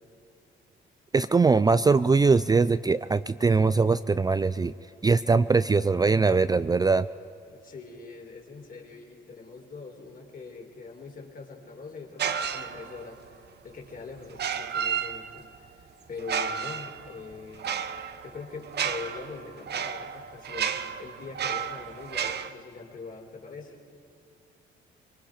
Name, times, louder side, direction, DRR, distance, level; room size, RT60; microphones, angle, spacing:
voice 1, 1.1-4.7 5.0-7.1, right 4 dB, 20° right, 13 dB, 0.4 m, -21 dB
voice 2, 7.5-13.2 13.6-15.8 16.1-17.8 18.2-23.8, left 4 dB, 45° left, 1 dB, 4.1 m, -43 dB
sound 1, 12.2-13.1 14.3-15.6 16.2-22.5, right 7 dB, 55° right, 1.1 m, -32 dB
25.5 x 22.0 x 5.0 m, 2.6 s
cardioid pair, 90°, 20 cm